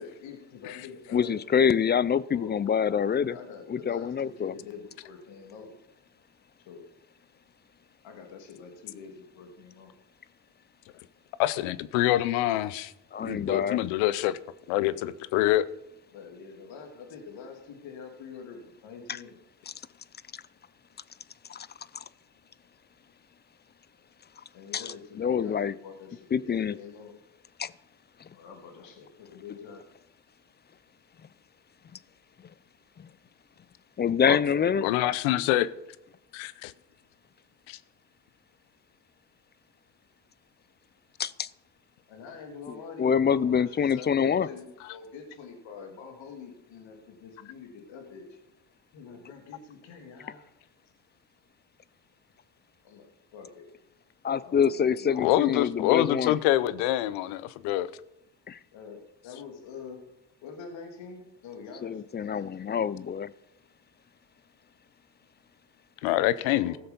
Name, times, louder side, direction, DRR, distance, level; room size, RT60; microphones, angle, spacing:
voice 1, 0.0-1.4 2.3-2.6 2.9-5.7 6.7-6.8 8.0-9.9 16.1-19.4 24.5-27.1 28.3-29.8 34.4-35.0 42.1-48.2 48.9-50.5 52.8-53.7 54.4-55.3 58.7-60.0 60.4-62.8 66.4-66.8, left 5 dB, 70° left, 3 dB, 2.4 m, -45 dB
voice 2, 1.1-3.4 3.7-4.5 13.1-13.8 19.1-19.2 19.7-19.8 20.3-20.4 21.5-21.7 21.9-22.0 24.7-25.7 26.3-26.8 27.6-27.7 28.2-28.3 33.0-33.1 34.0-34.9 41.2-41.5 43.0-44.5 54.2-56.4 58.5-58.6 61.8-63.3, left 7 dB, 25° left, 20 dB, 0.4 m, -26 dB
voice 3, 11.4-12.9 13.2-14.4 14.7-15.6 34.3-34.4 34.8-35.7 36.3-36.7 37.7-37.8 55.2-57.9 66.0-66.7, left 14 dB, 85° left, 17 dB, 0.7 m, -25 dB
15.5 x 6.8 x 5.4 m, 0.86 s
supercardioid pair, 75°, 47 cm